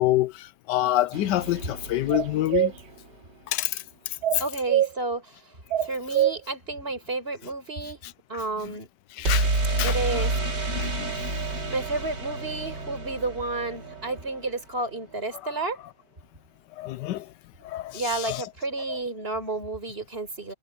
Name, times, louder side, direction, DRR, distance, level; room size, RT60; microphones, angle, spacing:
voice 1, 0.0-2.7 3.5-3.8 9.2-9.5 9.8-10.3 10.7-11.3 16.8-17.3 17.6-18.4 18.9-19.0, left 15 dB, 85° left, 1.3 m, -27 dB
sound 1, 1.1-3.1 9.2-15.0, right 2 dB, 90° right, 5.6 m, -30 dB
sound 2, 2.1-2.7 4.2-4.9 5.7-6.4, right 11 dB, 65° right, 1.3 m, -23 dB
voice 2, 4.4-5.5 5.8-8.0 8.3-8.9 9.8-10.3 11.7-15.8 17.6-20.5, right 3 dB, 35° right, 5.2 m, -31 dB
omnidirectional pair, 1.8 m